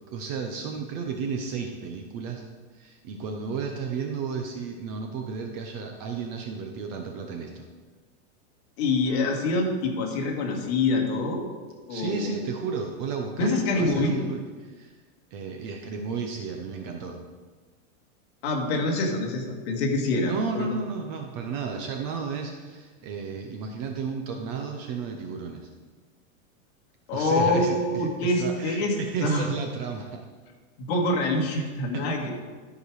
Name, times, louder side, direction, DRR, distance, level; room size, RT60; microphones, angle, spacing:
voice 1, 0.1-2.4 2.7-7.7 11.9-14.9 15.3-17.2 20.3-25.7 27.1-30.2 31.5-32.3, right 5 dB, 25° right, 3 dB, 0.6 m, -33 dB
voice 2, 8.8-11.5 11.9-12.3 13.4-14.2 18.4-20.7 27.1-28.9 29.2-29.5 30.8-32.3, left 2 dB, 45° left, 1 dB, 1.9 m, -25 dB
12.5 x 5.0 x 4.7 m, 1.4 s
supercardioid pair, 160°, 43 cm